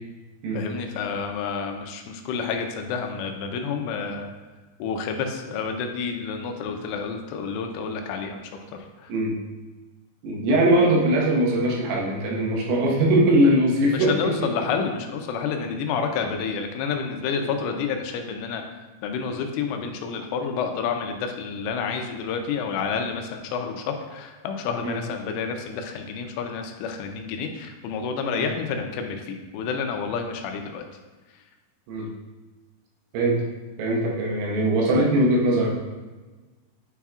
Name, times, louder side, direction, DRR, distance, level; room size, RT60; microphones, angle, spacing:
voice 1, 0.5-4.3 4.8-9.1 13.9-18.6 19.0-30.9, left 5 dB, 85° left, 4 dB, 3.1 m, -29 dB
voice 2, 10.2-14.7 15.6-15.7 24.8-25.0 28.3-28.5 31.9-32.1 33.1-33.4 33.8-35.7, right 1 dB, 90° right, -2 dB, 3.9 m, -21 dB
9.3 x 5.6 x 2.4 m, 1.2 s
omnidirectional pair, 5.8 m